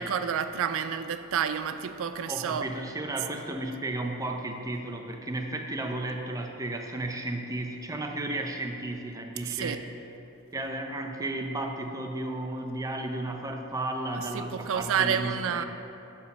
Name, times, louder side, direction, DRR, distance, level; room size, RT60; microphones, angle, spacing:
voice 1, 0.0-2.7 9.4-9.8 14.2-15.7, right 8 dB, 65° right, 11 dB, 0.4 m, -29 dB
voice 2, 2.3-9.8 10.5-15.7, right 2 dB, 15° right, 3 dB, 0.5 m, -33 dB
7.1 x 4.7 x 6.6 m, 3.0 s
head